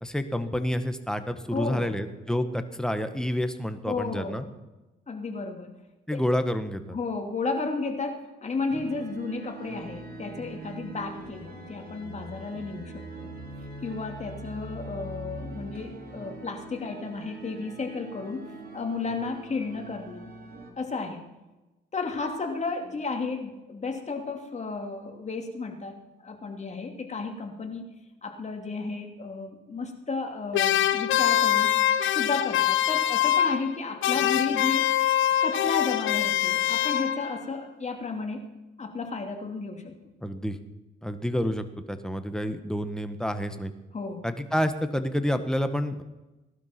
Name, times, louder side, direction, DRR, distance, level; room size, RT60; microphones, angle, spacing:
voice 1, 0.0-4.4 6.1-7.0 40.2-40.6 41.0-43.7 44.2-46.0, equal, 5° left, 8 dB, 1.5 m, -29 dB
voice 2, 1.5-2.0 3.8-4.5 5.1-5.8 6.1-6.2 6.9-13.3 13.8-20.3 20.8-21.2 21.9-26.0 26.2-27.9 28.2-31.7 32.1-34.8 35.4-38.5 38.8-39.9 43.9-44.3, left 4 dB, 35° left, 3 dB, 2.9 m, -33 dB
sound 1, 8.7-20.7, right 2 dB, 50° right, 3.9 m, -42 dB
sound 2, 30.5-33.8 34.0-37.4, left 12 dB, 75° left, 0.9 m, -24 dB
18.5 x 12.0 x 6.0 m, 1.1 s
cardioid pair, 90°, 20 cm